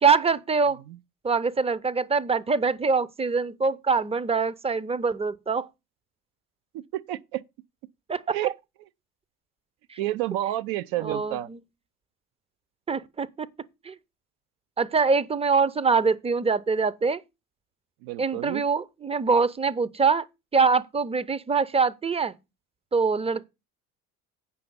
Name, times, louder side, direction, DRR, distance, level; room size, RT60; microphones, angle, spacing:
voice 1, 0.0-0.8 1.2-5.7 8.1-8.4 9.9-10.0 11.0-11.6 12.9-13.5 13.8-13.9 14.8-17.2 18.2-20.2 20.5-22.3 22.9-23.5, right 5 dB, 15° right, 0.7 m, -24 dB
voice 2, 6.7-7.4 8.3-8.5 10.0-11.5 18.0-18.6, right 14 dB, 55° right, 0.7 m, -30 dB
8.4 x 5.7 x 5.3 m
figure-of-eight pair, 55°, 44 cm